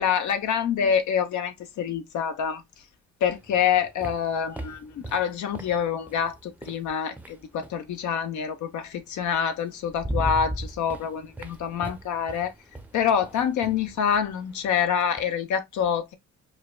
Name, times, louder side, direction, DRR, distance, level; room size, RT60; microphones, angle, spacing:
voice 1, 0.0-2.6 3.2-12.5 12.9-16.1, left 8 dB, 75° left, 0.8 m, -26 dB
sound 1, 3.4-7.9 9.2-9.3 9.7-15.3, right 1 dB, 5° right, 0.5 m, -38 dB
4.7 x 2.2 x 2.2 m
cardioid pair, 90°, 30 cm